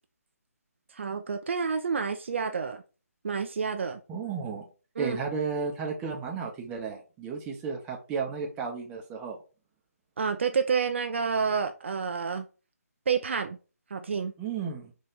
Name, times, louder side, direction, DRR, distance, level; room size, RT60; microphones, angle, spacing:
voice 1, 0.9-2.8 3.2-4.0 5.0-5.2 10.2-12.5 13.1-13.6 13.9-14.3, right 6 dB, 50° right, 0.5 m, -29 dB
voice 2, 4.1-4.7 5.0-9.4 14.4-14.9, right 5 dB, 15° right, 0.7 m, -33 dB
4.1 x 2.8 x 3.6 m
figure-of-eight pair, 145°, 9 cm